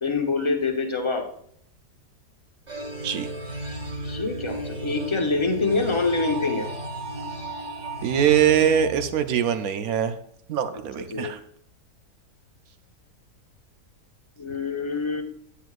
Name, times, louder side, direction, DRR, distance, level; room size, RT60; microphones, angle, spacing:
voice 1, 0.0-1.2 4.0-6.7 11.1-11.4 14.4-15.2, left 4 dB, 25° left, 3 dB, 0.7 m, -25 dB
sound 1, 2.7-9.7, right 1 dB, 30° right, 1.3 m, -34 dB
voice 2, 8.0-10.2 10.5-11.4, right 9 dB, 70° right, 10 dB, 1.0 m, -22 dB
10.0 x 9.2 x 2.4 m, 0.68 s
omnidirectional pair, 1.8 m